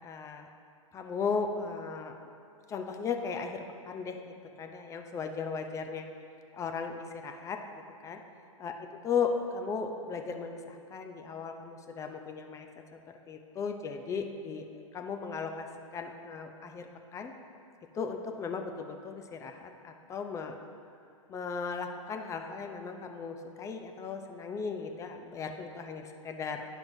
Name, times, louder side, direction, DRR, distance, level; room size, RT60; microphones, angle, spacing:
voice 1, 0.0-0.5 0.9-2.2 2.7-6.1 6.5-7.6 8.0-8.2 8.6-12.7 13.3-15.7 15.9-17.3 17.9-20.5 21.3-26.7, left 5 dB, 15° left, 5 dB, 0.5 m, -36 dB
10.5 x 5.7 x 2.6 m, 2.5 s
hypercardioid pair, 110°, 18 cm